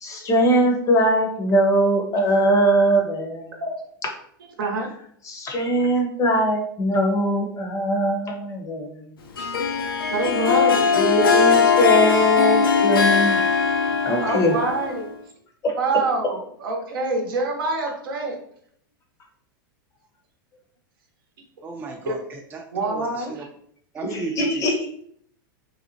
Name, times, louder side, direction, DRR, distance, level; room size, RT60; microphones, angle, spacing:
voice 1, 0.0-3.6 5.3-9.1 10.9-13.4 14.0-14.6 15.6-15.7 24.1-24.9, right 1 dB, 25° left, 3 dB, 0.6 m, -21 dB
voice 2, 4.6-4.9 10.1-10.8 14.2-15.1 15.8-18.3 22.1-22.2 22.7-23.3, right 3 dB, 75° right, 1 dB, 0.7 m, -25 dB
Harp, 9.4-15.1, left 5 dB, 90° left, 0.4 m, -20 dB
voice 3, 21.6-23.5 23.9-24.8, right 3 dB, 15° right, 0 dB, 0.3 m, -34 dB
2.7 x 2.0 x 2.6 m, 0.65 s
hypercardioid pair, 110°, 12 cm